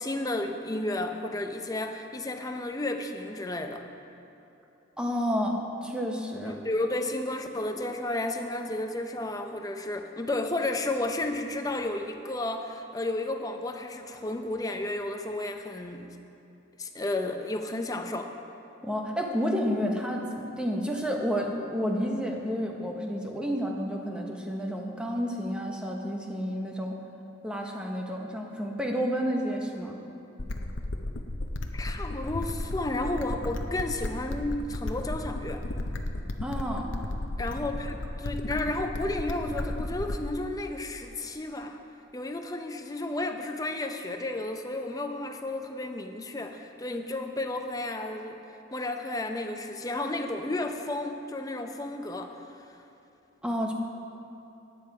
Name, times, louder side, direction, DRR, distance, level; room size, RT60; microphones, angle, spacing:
voice 1, 0.0-3.8 6.4-16.1 16.8-18.3 31.7-35.6 37.4-41.8 42.1-48.4 48.7-52.4, left 2 dB, 15° left, 5 dB, 0.6 m, -32 dB
voice 2, 5.0-6.6 18.8-27.0 27.4-30.0 36.4-36.9 53.4-53.7, equal, 5° right, 1 dB, 0.9 m, -30 dB
sound 1, 30.4-40.4, left 1 dB, 65° left, 0.7 m, -34 dB
12.5 x 9.6 x 4.7 m, 2.9 s
head